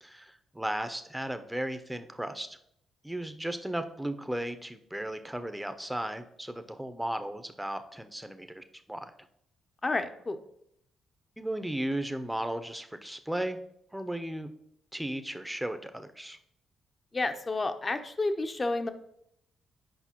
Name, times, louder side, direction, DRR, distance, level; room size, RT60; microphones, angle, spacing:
voice 1, 0.0-2.6 3.0-9.1 11.4-13.6 13.9-14.5 14.9-16.4, right 1 dB, 5° right, 9 dB, 0.7 m, -35 dB
voice 2, 9.8-10.4 17.1-18.9, left 2 dB, 30° left, 8 dB, 0.7 m, -30 dB
8.2 x 5.4 x 3.0 m, 0.73 s
hypercardioid pair, 40°, 0 cm